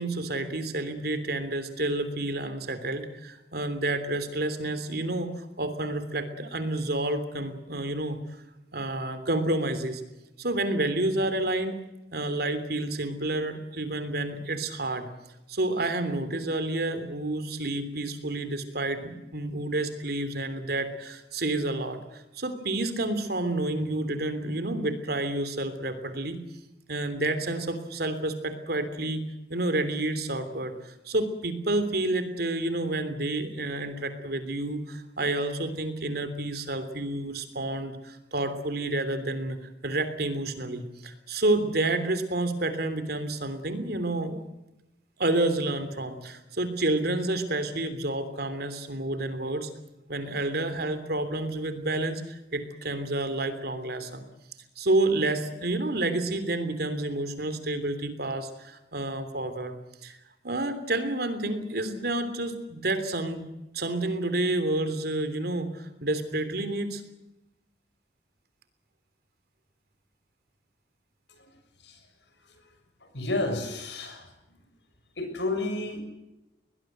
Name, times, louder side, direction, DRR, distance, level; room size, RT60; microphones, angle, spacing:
voice 1, 0.0-8.2 8.7-10.0 10.4-11.7 12.1-15.1 15.5-26.4 26.9-29.2 29.5-44.4 45.2-49.7 50.1-54.2 54.8-59.7 60.0-60.2 60.4-63.4 63.7-67.0, right 2 dB, 60° right, 10 dB, 3.3 m, -29 dB
voice 2, 73.0-74.3 75.2-76.0, left 2 dB, 75° left, 6 dB, 6.6 m, -31 dB
22.5 x 20.0 x 8.0 m, 0.95 s
head